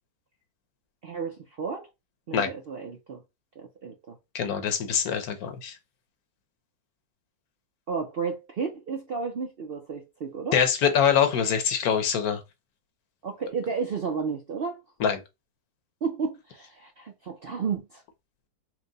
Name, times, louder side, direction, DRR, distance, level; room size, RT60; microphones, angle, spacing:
voice 1, 1.0-1.9 2.3-3.2 3.6-4.2 7.9-10.6 13.2-14.8 16.0-18.0, right 5 dB, 60° right, 0.6 m, -32 dB
voice 2, 4.3-5.7 10.5-12.4 15.0-15.2, left 8 dB, 70° left, 1.3 m, -24 dB
4.5 x 2.1 x 3.8 m
omnidirectional pair, 1.7 m